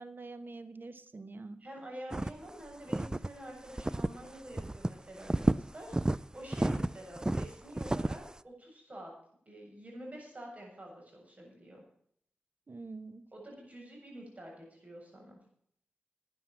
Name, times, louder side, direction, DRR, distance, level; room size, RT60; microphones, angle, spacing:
voice 1, 0.0-1.6 12.7-13.3, right 3 dB, 60° right, 12 dB, 1.2 m, -45 dB
voice 2, 1.6-9.1 9.5-11.8 13.3-15.4, right 1 dB, 35° right, -1 dB, 7.4 m, -48 dB
sound 1, 2.1-2.5 2.9-3.3 3.8-4.3 4.5-4.9 5.2-6.2 6.5-8.3, right 1 dB, 20° right, 0.5 m, -30 dB
12.5 x 9.3 x 7.4 m, 0.67 s
cardioid pair, 45°, 4 cm